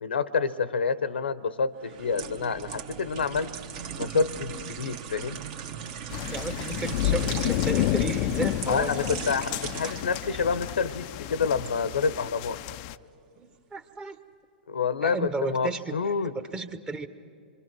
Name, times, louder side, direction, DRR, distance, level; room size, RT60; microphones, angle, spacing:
voice 1, 0.0-3.5 3.9-5.4 8.7-12.6 14.7-16.3, left 5 dB, 85° left, 15 dB, 1.0 m, -28 dB
sound 1, 1.8-11.8 12.2-12.4, right 8 dB, 50° right, 1.4 m, -38 dB
sound 2, 6.1-13.0, left 14 dB, 40° left, 0.5 m, -30 dB
voice 2, 6.3-9.2 13.4-14.2 14.9-16.0 16.2-17.1, right 3 dB, 15° right, 10 dB, 1.1 m, -34 dB
26.0 x 24.5 x 6.1 m, 2.4 s
hypercardioid pair, 120°, 6 cm